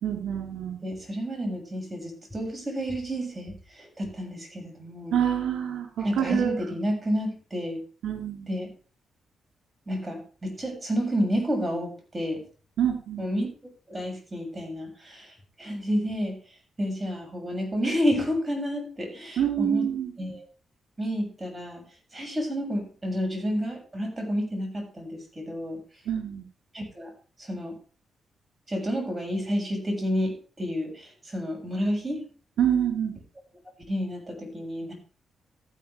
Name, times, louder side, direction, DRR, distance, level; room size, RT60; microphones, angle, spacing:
voice 1, 0.0-0.8 5.1-6.5 8.0-8.5 12.8-13.2 19.4-20.1 26.1-26.4 32.6-33.1, right 9 dB, 70° right, 2 dB, 4.0 m, -26 dB
voice 2, 0.8-5.1 6.0-7.8 8.5-8.7 9.9-12.4 13.2-13.5 13.9-15.3 15.6-16.4 16.8-19.9 20.2-20.4 21.0-21.8 22.1-25.8 26.7-27.1 27.4-27.8 28.7-32.3 33.9-34.9, equal, 25° right, 1 dB, 7.1 m, -30 dB
15.0 x 9.5 x 3.5 m, 0.38 s
hypercardioid pair, 45°, 0 cm